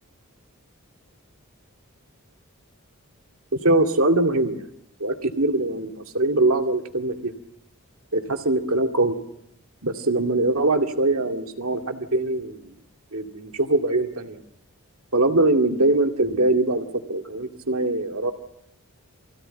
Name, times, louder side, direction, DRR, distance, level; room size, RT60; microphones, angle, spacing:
voice 1, 3.5-4.6 5.0-7.3 8.1-9.2 9.8-12.7 13.1-14.4 15.1-18.3, right 2 dB, 70° right, 4 dB, 2.3 m, -22 dB
25.5 x 16.0 x 9.0 m, 0.80 s
head